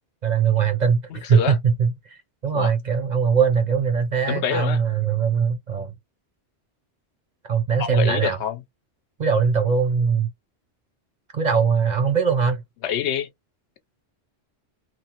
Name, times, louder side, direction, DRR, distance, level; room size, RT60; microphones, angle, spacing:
voice 1, 0.2-5.9 7.4-8.4 9.2-10.3 11.3-12.6, right 6 dB, 55° right, 0.5 m, -21 dB
voice 2, 1.1-1.6 2.5-2.7 4.3-4.8 7.8-8.6 12.8-13.3, left 8 dB, 80° left, 0.9 m, -26 dB
3.0 x 2.0 x 2.8 m
omnidirectional pair, 1.1 m